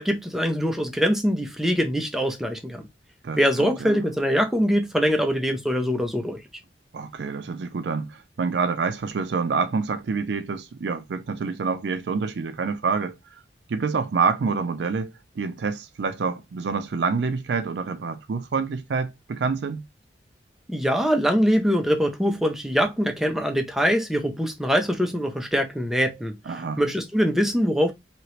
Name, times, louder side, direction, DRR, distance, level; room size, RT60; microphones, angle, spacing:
voice 1, 0.0-2.9 3.3-6.4 20.7-26.3 26.8-27.9, equal, ahead, 0.5 m, -23 dB
voice 2, 3.2-4.1 6.9-13.4 13.7-19.8 26.5-26.8, right 5 dB, 70° right, 0.4 m, -27 dB
2.9 x 2.9 x 3.0 m
head